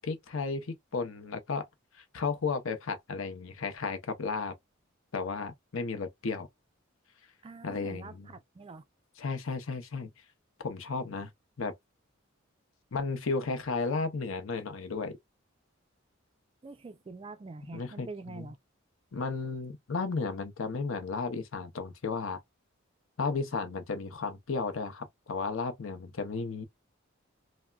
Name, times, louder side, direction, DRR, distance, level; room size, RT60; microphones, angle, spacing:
voice 1, 0.0-1.7 2.1-4.5 5.1-6.5 7.6-8.3 9.2-10.1 10.6-11.3 11.6-11.7 12.9-15.2 17.7-18.5 19.1-22.4 23.2-26.6, left 4 dB, 75° left, 0.7 m, -34 dB
voice 2, 7.4-8.8 16.6-18.6, right 3 dB, 25° right, 0.3 m, -45 dB
3.4 x 2.1 x 2.2 m
head